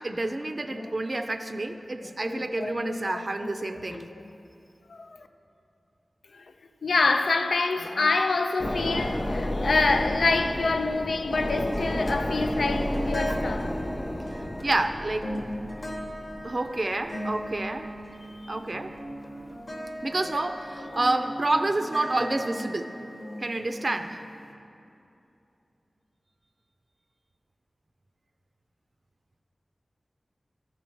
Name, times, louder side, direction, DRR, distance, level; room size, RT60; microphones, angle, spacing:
voice 1, 0.0-4.0 14.3-15.3 16.4-17.9 18.5-18.9 20.0-22.9 23.4-24.2, right 2 dB, 45° right, 0.4 m, -29 dB
voice 2, 2.0-4.3 4.9-5.3 6.3-6.5 6.8-13.7 18.3-18.5 20.9-21.2, left 3 dB, 85° left, 0.4 m, -27 dB
sound 1, 8.6-18.6 19.0-19.1, left 1 dB, 20° left, 0.6 m, -32 dB
sound 2, 11.4-24.5, equal, 50° left, 1.1 m, -38 dB
14.0 x 6.0 x 4.5 m
wide cardioid pair, 65°, 0 cm